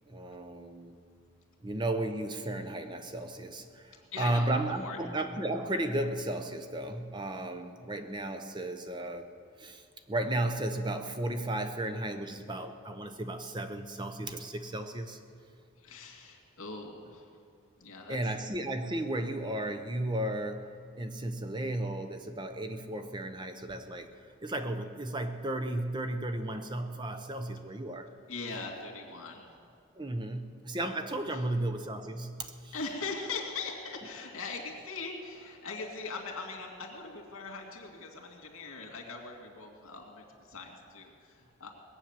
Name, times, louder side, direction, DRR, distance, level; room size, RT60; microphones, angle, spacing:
voice 1, 0.1-1.0 1.6-9.3 9.6-9.8 10.1-15.2 18.1-20.7 21.0-24.1 24.4-28.1 30.0-32.7, right 1 dB, 20° right, 7 dB, 0.6 m, -34 dB
voice 2, 4.1-5.0 15.8-17.3 17.8-18.3 28.3-29.4 31.3-31.5 32.7-41.7, left 4 dB, 70° left, 1 dB, 2.4 m, -41 dB
20.5 x 8.5 x 7.5 m, 2.3 s
head